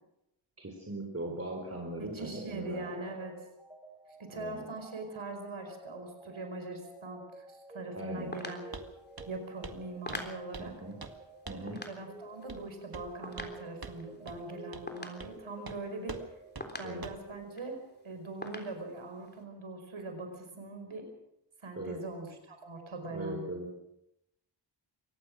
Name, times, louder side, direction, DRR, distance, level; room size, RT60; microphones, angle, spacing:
voice 1, 0.6-3.0 4.3-4.7 7.9-8.3 10.6-11.0 11.5-11.8 16.8-17.1 21.8-22.0 23.1-23.7, right 1 dB, 30° right, 1 dB, 4.1 m, -39 dB
sound 1, 1.6-18.2, right 2 dB, 10° right, 7.5 m, -52 dB
voice 2, 2.0-3.4 4.2-8.6 9.3-10.7 11.8-16.2 16.8-17.8 18.0-21.1 21.6-23.5, right 2 dB, 90° right, 5 dB, 5.3 m, -42 dB
Footsteps Shoes Tile Slow, 8.2-16.3 16.6-17.8 18.1-18.2 18.4-19.4, left 1 dB, 20° left, 3.6 m, -46 dB
Walk footsteps, 8.7-8.9 9.2-9.4 9.6-9.8 10.1-10.7 11.0-11.2 11.5-11.7 12.5-12.7 12.9-13.5 13.8-14.0 14.3-14.4 14.7-14.9 15.2-15.4 15.7-15.8 16.1-16.3 16.6-16.7 17.0-17.3, right 4 dB, 50° right, 1.9 m, -44 dB
24.0 x 18.5 x 6.3 m, 0.82 s
wide cardioid pair, 80°, 46 cm